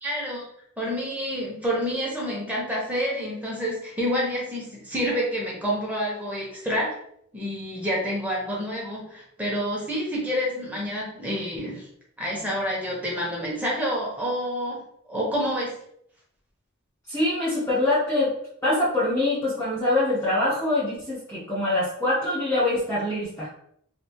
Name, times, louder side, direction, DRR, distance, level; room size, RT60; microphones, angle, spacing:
voice 1, 0.0-0.4 0.8-6.9 7.3-11.9 12.2-14.8 15.1-15.7, equal, 5° right, -4 dB, 0.9 m, -28 dB
voice 2, 17.1-18.3 18.6-23.5, left 2 dB, 10° left, -9 dB, 0.6 m, -24 dB
3.3 x 2.4 x 2.8 m, 0.69 s
head